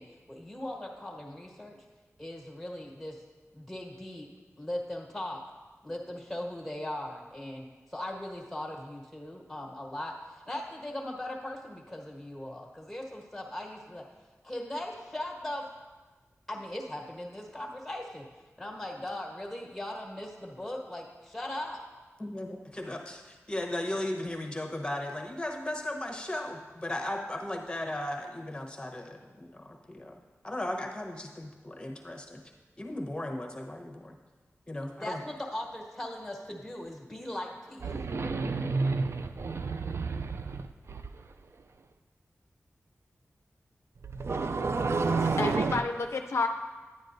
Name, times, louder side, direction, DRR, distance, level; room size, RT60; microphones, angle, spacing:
voice 1, 0.0-1.8 2.2-3.2 3.5-4.3 4.6-5.4 5.8-14.1 14.4-15.7 16.5-18.2 18.6-21.8 35.0-37.9, left 1 dB, 5° left, 0 dB, 1.5 m, -39 dB
voice 2, 22.2-30.2 30.4-32.4 32.8-34.2 34.7-35.2, left 1 dB, 20° left, 2 dB, 1.0 m, -36 dB
sound 1, 37.8-41.1 44.0-45.8, right 4 dB, 60° right, 0.3 m, -30 dB
voice 3, 45.2-46.5, left 4 dB, 65° left, 5 dB, 0.4 m, -30 dB
10.5 x 9.1 x 2.6 m, 1.3 s
wide cardioid pair, 80°, 5 cm